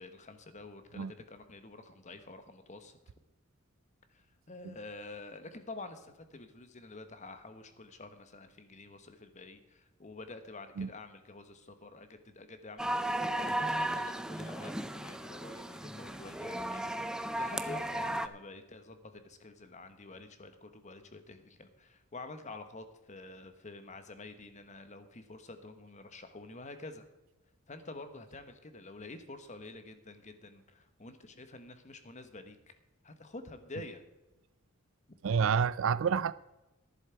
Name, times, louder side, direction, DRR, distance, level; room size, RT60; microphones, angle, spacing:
voice 1, 0.0-3.0 4.1-27.0 27.7-32.6 33.0-34.0, left 2 dB, 35° left, 1.2 m, -48 dB
sound 1, 12.8-18.3, right 1 dB, 5° right, 0.4 m, -35 dB
voice 2, 35.2-36.3, right 6 dB, 65° right, 0.4 m, -28 dB
11.0 x 11.0 x 4.5 m
head